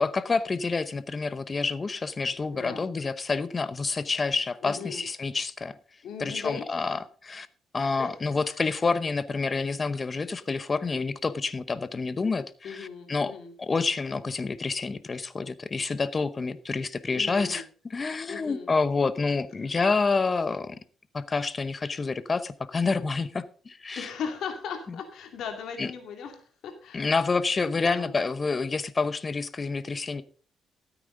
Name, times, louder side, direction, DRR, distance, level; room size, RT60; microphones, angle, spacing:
voice 1, 0.0-5.8 6.2-7.5 7.7-13.3 13.6-20.8 21.1-24.1 24.9-25.0 25.8-25.9 26.9-30.2, left 4 dB, 30° left, 15 dB, 0.8 m, -28 dB
voice 2, 2.5-2.9 4.6-5.0 6.0-6.6 7.8-8.1 12.6-13.5 17.1-17.6 18.3-18.7 24.0-27.1 27.8-28.1, left 6 dB, 75° left, 5 dB, 2.3 m, -38 dB
13.5 x 8.9 x 3.8 m, 0.42 s
cardioid pair, 90°, 0 cm